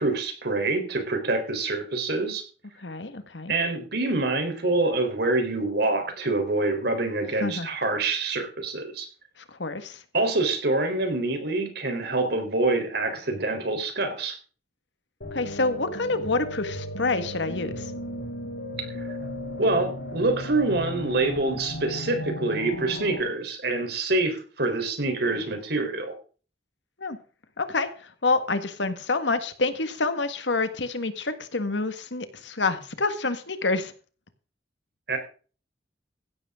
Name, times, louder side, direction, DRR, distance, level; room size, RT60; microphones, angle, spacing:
voice 1, 0.0-2.4 3.5-9.1 10.1-14.4 19.6-26.1 35.1-35.2, right 2 dB, 65° right, 5 dB, 4.0 m, -26 dB
voice 2, 2.8-3.5 7.4-7.7 9.4-10.0 15.3-17.9 27.0-27.2 27.6-33.9, left 3 dB, 80° left, 10 dB, 1.7 m, -28 dB
sound 1, 15.2-23.2, equal, 65° left, 7.4 m, -35 dB
16.0 x 12.0 x 3.8 m, 0.39 s
head